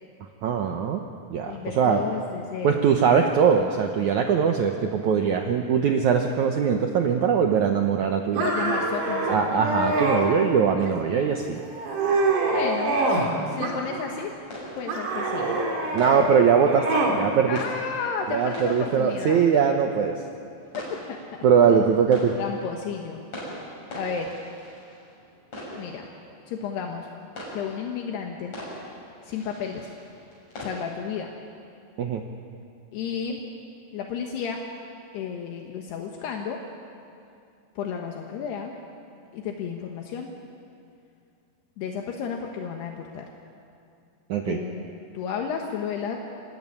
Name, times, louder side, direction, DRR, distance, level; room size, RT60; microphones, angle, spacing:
voice 1, 0.4-1.0 1.3-2.0 2.6-8.4 9.3-11.6 15.9-16.8 17.2-17.6 18.3-20.1 21.4-22.3 32.0-32.2 44.3-44.6, right 7 dB, 85° right, 4 dB, 1.7 m, -21 dB
voice 2, 1.4-2.8 8.4-9.6 12.5-13.0 13.5-14.3 14.8-15.6 17.5-19.4 21.1-21.2 21.7-21.8 22.4-23.2 23.9-24.3 25.7-26.1 26.5-27.1 27.5-28.5 29.2-29.9 30.6-31.3 32.9-33.4 33.9-34.6 35.1-36.6 37.8-38.7 39.3-40.3 41.8-43.3 44.4-44.9 45.1-46.2, left 6 dB, 75° left, 2 dB, 3.3 m, -32 dB
sound 1, 8.3-10.2 10.8-11.3 11.7-13.3 13.6-14.3 14.9-17.2, right 2 dB, 50° right, 3.9 m, -25 dB
sound 2, 12.9-31.0, left 1 dB, 40° left, 8.0 m, -42 dB
26.5 x 16.5 x 9.8 m, 2.4 s
omnidirectional pair, 4.9 m